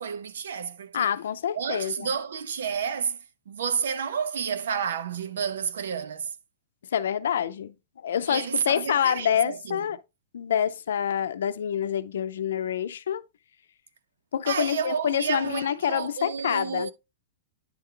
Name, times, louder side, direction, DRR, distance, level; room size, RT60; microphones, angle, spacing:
voice 1, 0.0-1.1 1.5-3.2 3.5-6.3 8.3-9.9 14.5-16.9, right 7 dB, 90° right, 0.8 m, -30 dB
voice 2, 0.9-2.1 6.9-10.0 10.3-13.2 14.3-16.9, left 9 dB, 90° left, 0.5 m, -27 dB
9.7 x 3.8 x 3.3 m
supercardioid pair, 175°, 0 cm